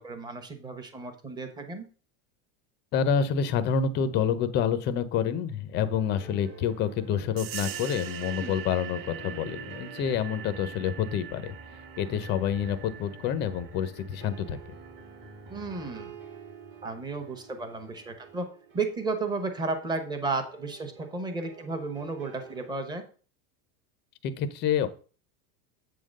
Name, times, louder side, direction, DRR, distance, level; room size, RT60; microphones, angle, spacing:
voice 1, 0.0-1.9 8.4-8.6 15.5-16.1 16.8-18.5 18.7-23.0, right 3 dB, 10° right, 6 dB, 0.8 m, -33 dB
voice 2, 2.9-11.5 12.0-14.6 24.2-24.9, left 7 dB, 25° left, 12 dB, 0.5 m, -28 dB
sound 1, 5.8-22.7, right 3 dB, 25° right, 1.1 m, -48 dB
sound 2, 7.4-15.7, right 10 dB, 70° right, 0.7 m, -43 dB
8.0 x 3.7 x 6.4 m, 0.39 s
cardioid pair, 170°, 40 cm